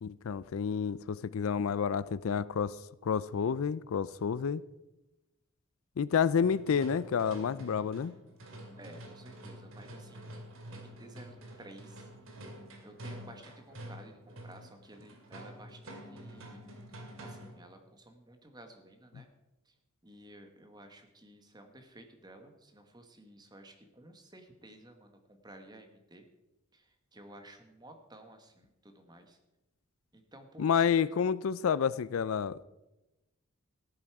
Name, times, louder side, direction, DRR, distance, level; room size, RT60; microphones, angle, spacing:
voice 1, 0.0-2.8 3.0-4.6 6.0-8.1 30.6-32.6, left 7 dB, 70° left, 18 dB, 0.4 m, -29 dB
sound 1, 6.4-17.7, right 1 dB, 65° right, 2.3 m, -48 dB
voice 2, 8.8-10.3 10.7-12.1 12.8-16.6 17.2-19.3 19.6-19.7 20.0-26.2 26.7-29.4 30.1-31.2, right 1 dB, 20° right, 6 dB, 1.4 m, -54 dB
14.0 x 11.0 x 4.8 m, 0.99 s
head